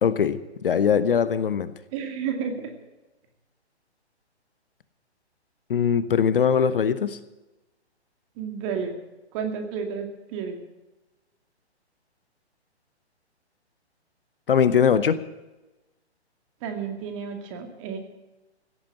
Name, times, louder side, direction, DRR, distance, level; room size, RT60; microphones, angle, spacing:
voice 1, 0.0-1.7 5.7-7.2 14.5-15.2, left 7 dB, 55° left, 14 dB, 0.9 m, -21 dB
voice 2, 1.9-2.7 8.4-8.9 9.3-10.6 16.6-18.0, right 6 dB, 30° right, 5 dB, 2.2 m, -31 dB
16.5 x 8.8 x 8.9 m, 1.1 s
figure-of-eight pair, 130°, 34 cm